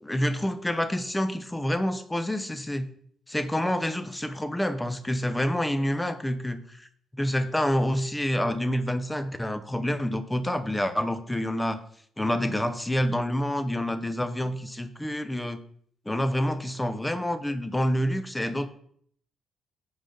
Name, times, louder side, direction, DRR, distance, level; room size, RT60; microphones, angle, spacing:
voice 1, 0.0-2.9 3.3-6.9 7.1-11.8 12.2-15.6 16.1-18.7, equal, 10° left, 10 dB, 0.6 m, -27 dB
7.6 x 5.0 x 3.8 m, 0.62 s
cardioid pair, 90°, 0 cm